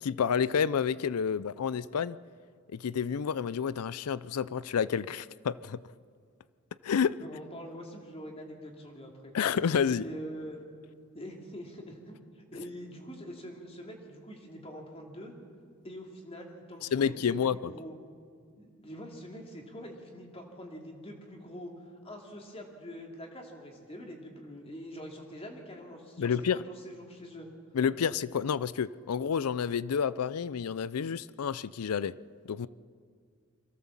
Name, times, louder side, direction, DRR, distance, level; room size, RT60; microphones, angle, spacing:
voice 1, 0.0-2.2 2.7-5.8 6.8-7.2 9.3-10.0 16.9-17.7 26.2-26.6 27.7-32.1 32.5-32.7, left 7 dB, 85° left, 0.4 m, -29 dB
voice 2, 7.2-9.3 9.9-10.6 11.1-15.3 15.8-18.0 18.6-27.5, equal, 25° left, 2.6 m, -44 dB
23.5 x 16.5 x 7.4 m
head